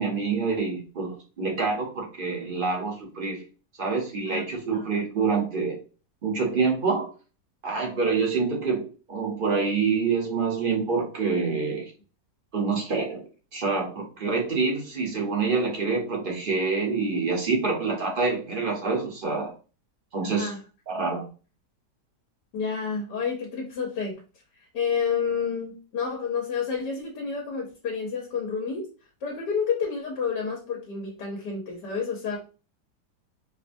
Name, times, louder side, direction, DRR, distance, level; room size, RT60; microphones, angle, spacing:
voice 1, 0.0-3.4 3.8-5.8 6.2-7.1 7.6-11.9 12.5-13.2 13.5-19.5 20.1-20.5 20.9-21.3, right 4 dB, 45° right, 0 dB, 0.7 m, -26 dB
voice 2, 20.2-20.6 22.5-24.2 24.7-28.8 29.2-32.4, left 6 dB, 85° left, -1 dB, 1.4 m, -29 dB
4.6 x 2.2 x 2.5 m, 0.35 s
omnidirectional pair, 1.8 m